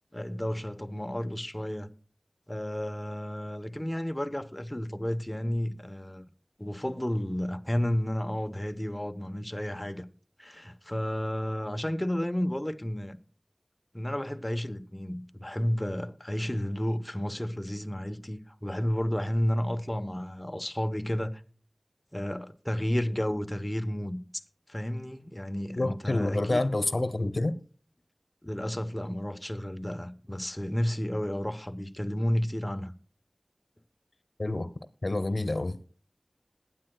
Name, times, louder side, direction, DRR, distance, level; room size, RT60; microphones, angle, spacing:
voice 1, 0.1-1.9 2.5-6.2 6.6-10.0 10.4-13.2 13.9-21.4 22.1-24.2 24.7-26.6 28.4-32.9, equal, 20° left, 0.9 m, -32 dB
voice 2, 25.8-27.5 34.4-34.7 35.0-35.8, left 2 dB, 75° left, 0.9 m, -28 dB
20.5 x 9.8 x 2.3 m
wide cardioid pair, 45°, 0 cm